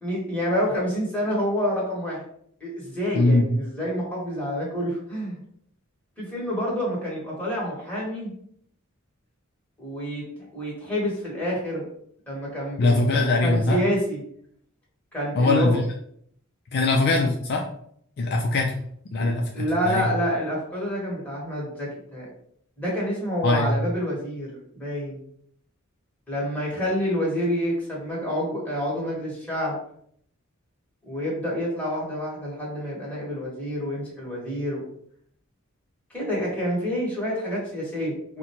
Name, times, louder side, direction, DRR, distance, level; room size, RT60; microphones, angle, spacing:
voice 1, 0.0-2.2 2.6-5.4 6.2-8.3 9.8-10.2 10.5-11.9 12.3-14.2 15.1-15.8 19.2-22.3 22.8-25.2 26.3-29.8 31.0-34.8 36.1-38.4, equal, 5° left, -6 dB, 1.3 m, -28 dB
voice 2, 3.1-3.5 12.8-13.8 15.4-15.8 16.7-17.6 18.2-18.7 19.1-20.1 23.4-23.8, left 2 dB, 50° left, 1 dB, 0.4 m, -21 dB
4.0 x 2.2 x 2.9 m, 0.66 s
head